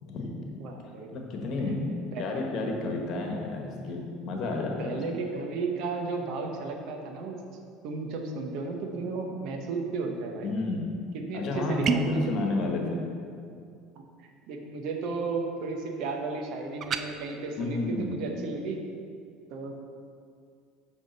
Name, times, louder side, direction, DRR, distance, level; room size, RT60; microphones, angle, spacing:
voice 1, 0.0-0.4 1.1-1.9 2.2-5.0 10.4-11.0 11.3-13.0 17.6-18.2, left 2 dB, 55° left, 1 dB, 1.2 m, -31 dB
voice 2, 0.6-1.1 1.9-2.3 4.8-7.4 7.8-10.5 11.1-12.3 14.5-18.8 19.5-19.8, right 4 dB, 65° right, 3 dB, 0.9 m, -34 dB
sound 1, 11.8-12.2 16.8-17.1, right 7 dB, 45° right, 0.4 m, -27 dB
7.7 x 3.6 x 5.3 m, 2.3 s
supercardioid pair, 95°, 0 cm